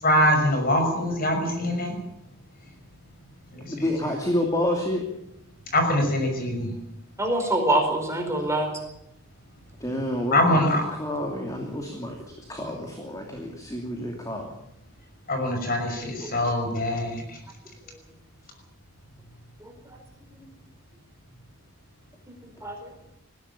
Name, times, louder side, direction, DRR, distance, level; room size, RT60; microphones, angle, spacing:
voice 1, 0.0-2.0 3.5-3.7 5.7-6.7 10.3-10.8 15.3-17.4, left 1 dB, 40° left, 4 dB, 6.1 m, -23 dB
voice 2, 3.7-5.0 9.8-12.1 12.5-14.5, left 1 dB, 15° left, 2 dB, 2.7 m, -29 dB
voice 3, 7.2-8.7 16.2-16.3 19.6-19.7 20.3-20.5 22.6-22.9, right 1 dB, 15° right, 3 dB, 4.7 m, -25 dB
20.5 x 16.0 x 8.7 m, 0.78 s
head